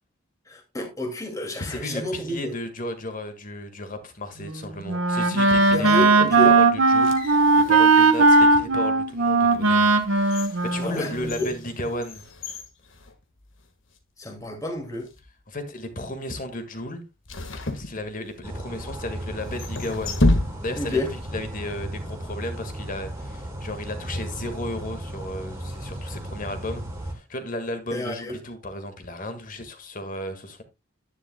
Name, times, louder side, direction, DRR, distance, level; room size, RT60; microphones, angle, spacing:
voice 1, 0.5-2.5 5.7-6.5 10.8-11.5 14.2-15.1 20.7-21.1 27.9-28.4, left 1 dB, 15° left, 2.2 m, -30 dB
voice 2, 1.6-12.2 15.5-17.0 17.8-20.2 20.6-21.0 21.3-30.6, left 1 dB, 40° left, 1.7 m, -34 dB
Wind instrument woodwind instrument, 4.4-11.5, right 3 dB, 75° right, 1.2 m, -19 dB
sound 1, 6.8-8.6 9.2-9.3 9.9-13.7 13.9-14.0 14.9-15.3 17.2-18.6 19.4-21.0 21.2-21.3, left 1 dB, 65° left, 1.6 m, -30 dB
sound 2, 18.4-27.1, right 1 dB, 15° right, 2.5 m, -35 dB
10.5 x 10.0 x 2.2 m
head